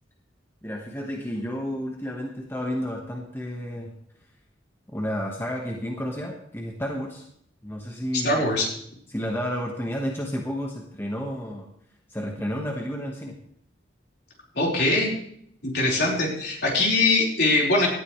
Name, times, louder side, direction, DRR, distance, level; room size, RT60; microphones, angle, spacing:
voice 1, 0.6-3.9 4.9-7.3 7.6-8.4 9.1-11.7 12.1-13.4, equal, 10° left, 0 dB, 1.5 m, -31 dB
voice 2, 8.2-8.7 14.5-15.1 15.6-17.9, left 2 dB, 55° left, -2 dB, 4.7 m, -22 dB
18.5 x 12.5 x 3.3 m, 0.68 s
head